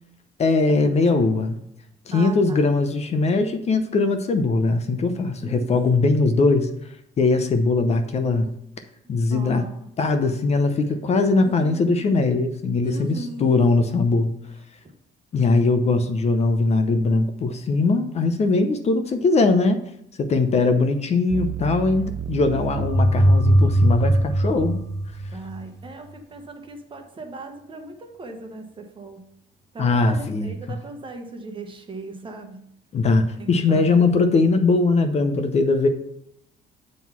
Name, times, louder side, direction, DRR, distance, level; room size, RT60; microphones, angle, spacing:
voice 1, 0.4-1.6 2.1-6.7 7.2-8.5 9.1-9.7 10.0-14.3 15.3-19.8 20.2-24.9 29.8-30.8 32.9-35.9, left 3 dB, 40° left, 8 dB, 0.7 m, -20 dB
voice 2, 2.1-2.6 5.4-6.1 9.0-9.9 11.4-12.4 12.8-13.6 22.4-23.1 25.3-29.3 29.7-32.7 33.4-34.3, right 2 dB, 30° right, 4 dB, 1.2 m, -38 dB
sound 1, 21.3-25.5, right 9 dB, 45° right, 0.6 m, -34 dB
sound 2, 22.8-25.6, equal, 15° left, 1.3 m, -19 dB
7.4 x 3.9 x 5.9 m, 0.74 s
cardioid pair, 110°, 17 cm